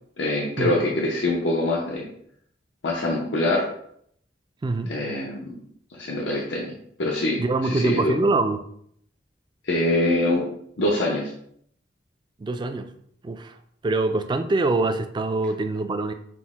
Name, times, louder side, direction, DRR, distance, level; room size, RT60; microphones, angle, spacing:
voice 1, 0.2-2.1 2.8-3.7 4.9-5.5 5.9-6.7 7.0-8.1 9.6-10.4 10.8-11.3, left 1 dB, 85° left, -1 dB, 0.7 m, -24 dB
voice 2, 4.6-4.9 7.4-8.6 12.4-12.9 13.2-13.5 13.8-16.1, right 2 dB, 25° right, 9 dB, 0.3 m, -24 dB
6.0 x 2.1 x 3.5 m, 0.67 s
head